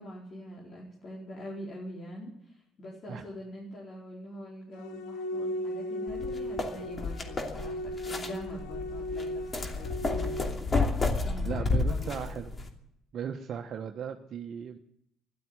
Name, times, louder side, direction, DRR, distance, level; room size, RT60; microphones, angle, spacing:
voice 1, 0.0-12.3, equal, 55° left, -4 dB, 4.5 m, -44 dB
sound 1, 4.7-10.5, left 1 dB, 85° left, 2.0 m, -37 dB
sound 2, 6.1-12.7, left 3 dB, 35° left, 2.7 m, -31 dB
voice 2, 11.4-12.5 13.1-14.8, right 7 dB, 60° right, 4 dB, 1.2 m, -37 dB
12.5 x 12.0 x 9.7 m, 0.75 s
supercardioid pair, 65°, 0 cm